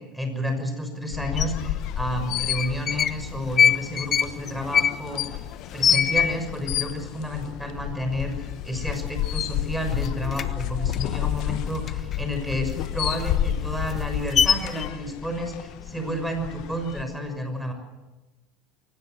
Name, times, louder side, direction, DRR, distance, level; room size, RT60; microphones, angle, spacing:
voice 1, 0.0-5.4 5.7-17.7, equal, ahead, 6 dB, 6.3 m, -31 dB
sound 1, 1.1-17.0, left 12 dB, 60° left, 1.2 m, -31 dB
sound 2, 1.4-1.5 2.4-3.2 3.5-6.7 7.0-7.1 7.4-7.9 8.3-8.5 8.8-9.6 9.8-12.2 12.6-14.9, left 7 dB, 35° left, 1.2 m, -23 dB
23.5 x 18.5 x 7.9 m, 1.1 s
hypercardioid pair, 80°, 0 cm